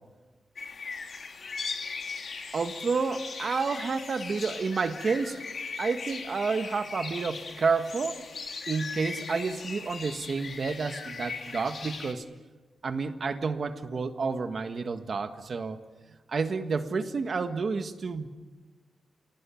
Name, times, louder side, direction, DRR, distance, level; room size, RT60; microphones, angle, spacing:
sound 1, 0.6-12.1, left 4 dB, 50° left, 2.7 m, -39 dB
voice 1, 2.5-5.4 5.8-8.2 8.7-12.2 12.8-15.8 16.3-18.3, right 4 dB, 45° right, 7 dB, 1.6 m, -30 dB
29.0 x 18.0 x 8.6 m, 1.3 s
wide cardioid pair, 170°, 0 cm